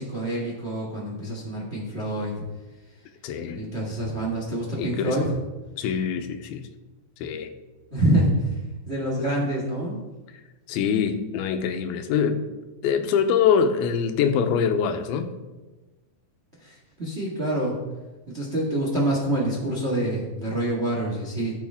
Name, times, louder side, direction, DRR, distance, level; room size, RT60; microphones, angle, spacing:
voice 1, 0.0-2.3 3.5-5.3 7.9-8.3 8.8-9.9 16.6-17.7 18.3-21.5, right 1 dB, 30° right, -3 dB, 1.1 m, -26 dB
voice 2, 3.2-3.7 4.8-5.2 5.8-6.6 7.2-7.5 10.7-12.5 12.8-15.3, left 7 dB, 90° left, 8 dB, 2.7 m, -24 dB
15.0 x 7.2 x 3.6 m, 1.1 s
omnidirectional pair, 4.3 m